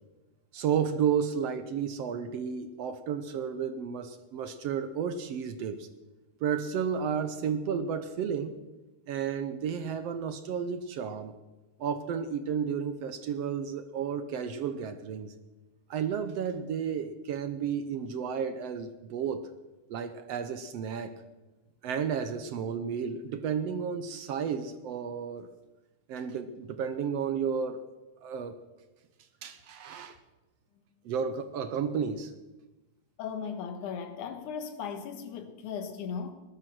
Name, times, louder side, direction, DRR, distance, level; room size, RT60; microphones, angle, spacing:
voice 1, 0.5-5.9 6.4-8.6 9.1-11.3 11.8-15.3 15.9-19.5 19.9-21.1 21.8-25.5 26.1-27.8 28.2-28.6 29.4-30.2 31.1-32.3, right 7 dB, 70° right, 10 dB, 1.7 m, -32 dB
voice 2, 33.2-36.3, left 6 dB, 85° left, 8 dB, 2.9 m, -37 dB
19.5 x 12.0 x 6.1 m, 1.1 s
omnidirectional pair, 3.4 m